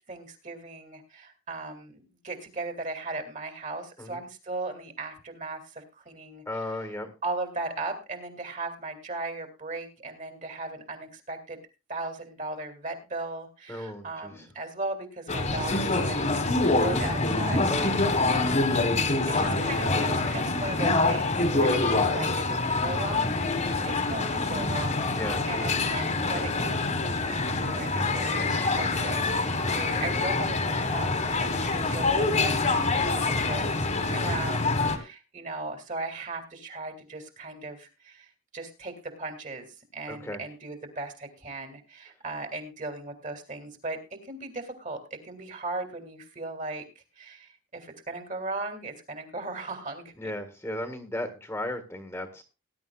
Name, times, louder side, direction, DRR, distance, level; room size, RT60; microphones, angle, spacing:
voice 1, 0.1-6.7 7.2-11.6 11.9-17.7 17.9-26.8 27.0-39.7 39.9-46.8 47.2-50.3, right 2 dB, 35° right, 6 dB, 2.5 m, -38 dB
voice 2, 6.4-7.1 13.7-14.5 17.7-18.3 25.1-25.5 34.8-35.0 40.1-40.4 50.2-52.4, left 1 dB, 10° left, 7 dB, 1.5 m, -35 dB
sound 1, 15.3-35.0, left 3 dB, 35° left, 1.5 m, -26 dB
19.0 x 11.0 x 2.3 m, 0.28 s
head